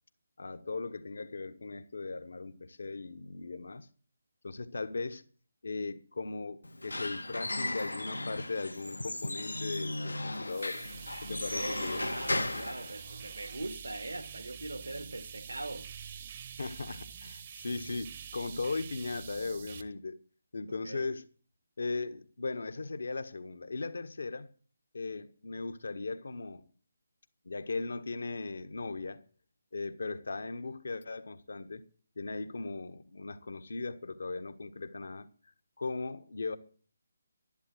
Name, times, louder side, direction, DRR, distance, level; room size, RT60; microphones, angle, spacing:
voice 1, 0.4-3.9 4.4-5.2 5.6-10.9 11.2-12.0 16.6-20.2 20.5-21.2 21.8-24.5 24.9-26.6 27.4-29.2 29.7-31.8 32.2-35.3 35.8-36.6, left 3 dB, 60° left, 1.5 m, -38 dB
Squeak / Wood, 6.6-13.5, left 2 dB, 75° left, 1.4 m, -36 dB
sound 1, 10.4-19.8, right 8 dB, 35° right, 1.1 m, -46 dB
voice 2, 11.5-15.9 20.8-21.1, right 2 dB, 75° right, 1.8 m, -41 dB
12.0 x 11.5 x 7.7 m
figure-of-eight pair, 145°, 0 cm